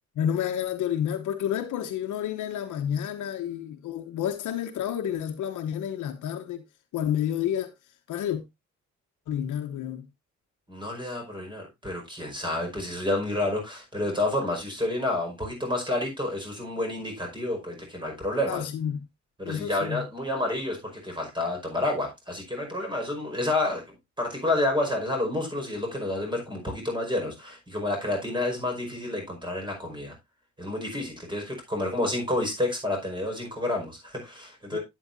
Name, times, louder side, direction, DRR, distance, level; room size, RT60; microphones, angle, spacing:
voice 1, 0.2-6.6 6.9-7.7 8.1-8.4 9.3-10.0 18.5-19.0 19.4-20.0 34.7-34.8, left 9 dB, 80° left, 1.0 m, -30 dB
voice 2, 10.7-18.7 19.4-23.8 24.2-30.1 30.6-34.8, left 1 dB, 15° right, 5.3 m, -29 dB
11.0 x 8.6 x 2.6 m
cardioid pair, 90°, 30 cm